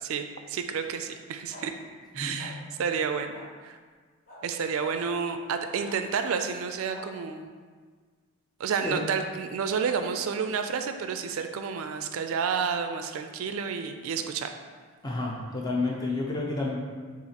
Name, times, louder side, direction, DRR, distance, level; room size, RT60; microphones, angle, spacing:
voice 1, 0.0-1.7 2.1-3.8 4.4-7.5 8.6-14.6, right 6 dB, 75° right, 7 dB, 0.3 m, -30 dB
sound 1, 1.5-1.6 2.4-2.5 3.3-3.4 4.3-4.4 5.8-6.0 6.9-7.0, left 1 dB, 40° left, 1.2 m, -46 dB
voice 2, 15.0-16.8, left 2 dB, 20° left, -3 dB, 0.6 m, -30 dB
7.0 x 2.5 x 2.9 m, 1.5 s
head